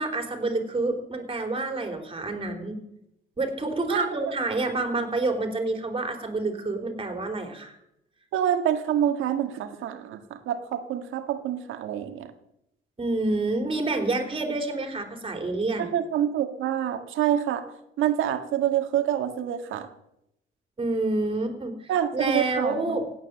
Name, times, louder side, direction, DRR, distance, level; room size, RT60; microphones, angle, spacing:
voice 1, 0.0-2.8 3.4-7.8 13.0-15.9 20.8-23.1, right 2 dB, 25° right, 5 dB, 3.5 m, -28 dB
voice 2, 8.3-12.3 15.8-17.6 18.0-19.9 21.9-23.0, right 10 dB, 85° right, 8 dB, 1.7 m, -27 dB
16.5 x 9.3 x 7.5 m, 0.82 s
cardioid pair, 90°, 20 cm